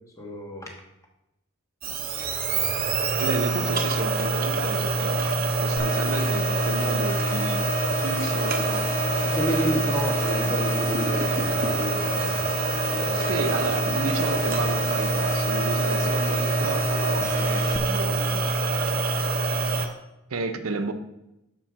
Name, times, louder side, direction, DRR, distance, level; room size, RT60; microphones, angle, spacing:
voice 1, 0.2-0.7 9.2-12.4 12.9-13.4, equal, 15° left, 0 dB, 1.2 m, -31 dB
sound 1, 1.8-19.9, right 3 dB, 45° right, 0.7 m, -25 dB
voice 2, 3.2-5.2 5.6-7.6 8.0-8.9 9.4-10.0 13.1-19.2 20.3-20.9, right 3 dB, 90° right, 8 dB, 0.7 m, -32 dB
sound 2, 5.8-17.8, left 3 dB, 35° left, 0.4 m, -33 dB
6.0 x 4.4 x 6.1 m, 0.88 s
head